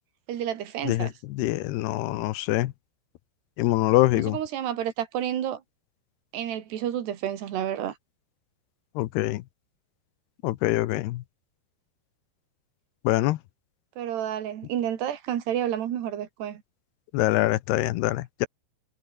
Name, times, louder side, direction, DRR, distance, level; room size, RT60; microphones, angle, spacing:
voice 1, 0.3-1.1 4.2-5.6 6.3-8.0 14.0-16.6, right 10 dB, 85° right, 4.3 m, -30 dB
voice 2, 0.8-2.7 3.6-4.4 9.0-9.4 10.4-11.2 13.0-13.4 17.1-18.5, left 17 dB, 80° left, 2.9 m, -24 dB
omnidirectional pair, 4.7 m